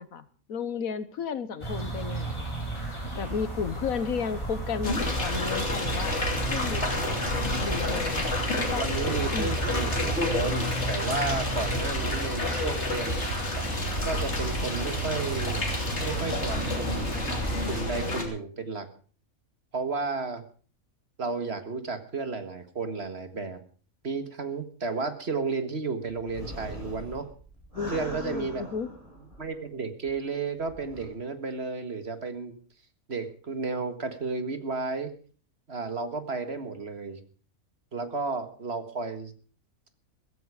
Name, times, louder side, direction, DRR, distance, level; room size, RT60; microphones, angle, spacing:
voice 1, 0.0-2.5 3.1-6.2 6.5-7.2 7.6-8.3 8.7-8.8 9.3-9.6 27.7-28.9, left 6 dB, 85° left, 14 dB, 1.6 m, -33 dB
sound 1, 1.6-17.8, right 2 dB, 20° left, 5.8 m, -34 dB
sound 2, 4.8-18.2, left 1 dB, 50° left, 3.2 m, -30 dB
voice 2, 8.8-13.2 14.0-15.6 16.0-17.2 17.6-18.9 19.7-20.4 21.2-23.6 24.0-27.2 27.9-28.7 29.4-32.5 33.1-35.1 35.7-37.2 37.9-39.3, right 4 dB, 50° right, 8 dB, 1.9 m, -33 dB
sound 3, 26.1-29.7 30.1-30.2 30.6-31.1, equal, 25° right, 7.7 m, -42 dB
15.5 x 15.0 x 5.0 m, 0.41 s
omnidirectional pair, 1.4 m